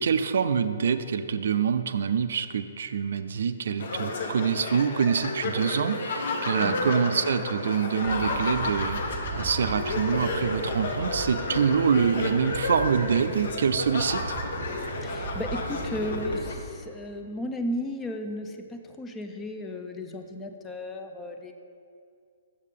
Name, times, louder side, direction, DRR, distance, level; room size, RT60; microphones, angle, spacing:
voice 1, 0.0-14.2, right 6 dB, 70° right, 11 dB, 0.3 m, -26 dB
sound 1, 3.8-16.5, left 3 dB, 60° left, 0.8 m, -32 dB
voice 2, 6.6-6.9 15.0-21.5, left 1 dB, 15° left, 5 dB, 0.4 m, -34 dB
sound 2, 8.0-16.6, right 4 dB, 35° right, 0.6 m, -37 dB
6.6 x 6.5 x 3.6 m, 2.4 s
hypercardioid pair, 155°, 0 cm